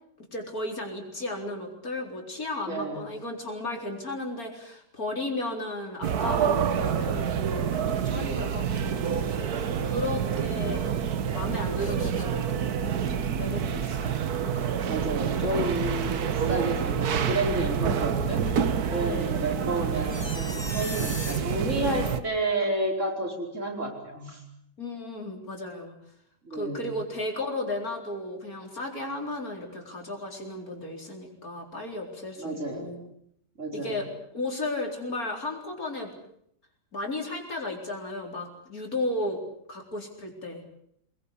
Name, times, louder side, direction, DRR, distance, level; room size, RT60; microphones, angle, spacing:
voice 1, 0.3-10.9 11.3-14.7 19.0-19.4 24.8-25.9 26.5-33.1 33.7-36.1 36.9-39.4 39.7-40.6, left 2 dB, 60° left, 2 dB, 4.6 m, -34 dB
voice 2, 2.7-3.0 14.9-18.5 18.9-24.4 26.4-27.0 32.4-32.9 33.6-34.0, right 1 dB, 45° right, 1 dB, 5.4 m, -31 dB
sound 1, 6.0-22.2, right 7 dB, 65° right, 1.7 m, -28 dB
sound 2, 11.8-12.2 12.7-14.4 15.1-16.6 17.2-18.9 19.9-21.4 22.0-22.2, left 2 dB, 15° left, 1.8 m, -40 dB
24.0 x 21.0 x 8.4 m, 0.72 s
omnidirectional pair, 1.8 m